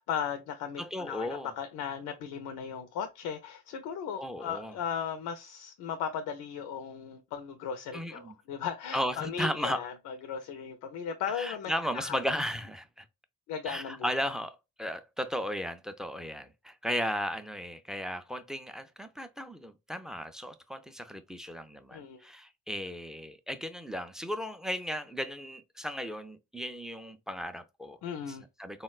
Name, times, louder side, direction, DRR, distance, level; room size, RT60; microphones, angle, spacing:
voice 1, 0.0-12.2 13.5-14.1 21.9-22.2 28.0-28.4, left 7 dB, 85° left, 0.5 m, -37 dB
voice 2, 0.8-1.5 4.2-4.7 7.9-8.4 8.9-9.8 11.3-13.1 13.6-28.0 28.3-28.8, equal, ahead, 0.3 m, -35 dB
3.6 x 2.1 x 2.3 m
cardioid pair, 90°, 30 cm